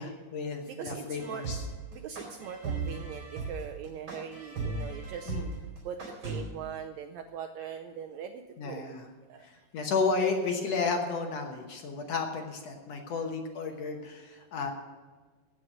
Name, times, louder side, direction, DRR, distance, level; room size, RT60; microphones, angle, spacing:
voice 1, 0.0-1.6 5.3-5.5 8.6-9.0 9.4-14.7, left 4 dB, 60° left, 3 dB, 1.9 m, -32 dB
voice 2, 0.7-1.4 1.9-5.3 5.8-8.9 9.2-9.6 14.3-14.4, right 8 dB, 80° right, 5 dB, 1.6 m, -41 dB
sound 1, 1.2-6.4, right 4 dB, 40° right, 4.7 m, -36 dB
16.0 x 6.3 x 7.7 m, 1.4 s
omnidirectional pair, 3.8 m